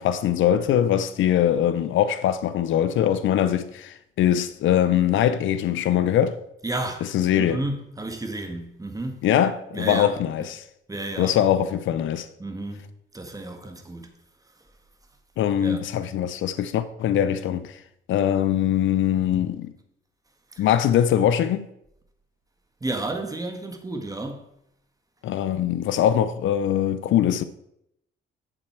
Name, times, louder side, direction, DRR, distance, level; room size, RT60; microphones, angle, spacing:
voice 1, 0.0-6.4 7.1-7.6 9.2-10.6 11.2-12.3 15.4-17.8 18.1-19.7 20.6-21.7 25.2-27.4, left 10 dB, 75° left, 0.6 m, -22 dB
voice 2, 6.6-7.1 7.4-9.3 9.7-10.1 10.9-11.4 12.4-12.8 13.1-14.1 15.6-15.8 20.5-20.7 22.8-24.5, right 2 dB, 15° right, 1.5 m, -32 dB
7.9 x 7.3 x 4.5 m
cardioid pair, 90°, 20 cm